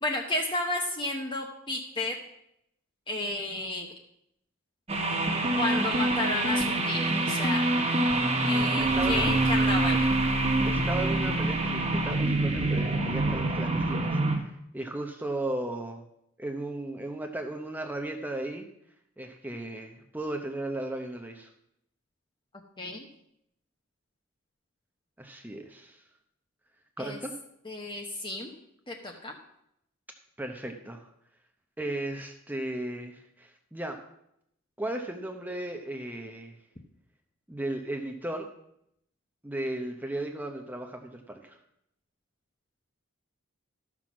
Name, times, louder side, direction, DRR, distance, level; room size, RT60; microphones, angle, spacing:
voice 1, 0.0-2.2 3.1-3.9 5.6-7.7 8.4-10.1 22.8-23.1 27.0-27.2 27.6-28.5 28.9-29.4, left 2 dB, 20° left, 1 dB, 0.9 m, -32 dB
sound 1, 4.9-14.4, right 2 dB, 30° right, 1.5 m, -26 dB
voice 2, 8.8-9.3 10.7-16.0 16.4-18.6 19.2-21.5 25.2-26.0 27.0-27.3 29.1-29.2 30.4-31.1 31.8-34.0 34.8-36.6 37.5-38.5 39.4-41.6, right 1 dB, 10° right, 4 dB, 0.7 m, -36 dB
13.0 x 6.0 x 6.1 m, 0.77 s
head